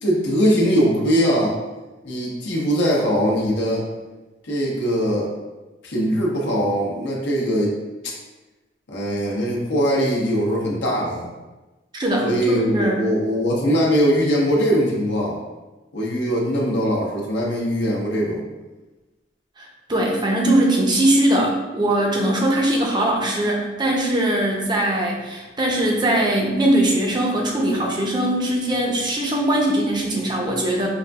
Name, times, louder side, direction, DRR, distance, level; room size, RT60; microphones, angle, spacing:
voice 1, 0.0-1.6 2.0-3.8 4.4-5.3 5.8-7.8 8.9-11.3 12.2-15.4 15.9-18.4, equal, 70° left, -4 dB, 0.8 m, -21 dB
voice 2, 11.9-13.0 19.9-30.9, right 1 dB, 25° right, -1 dB, 0.6 m, -20 dB
5.0 x 2.5 x 2.3 m, 1.1 s
head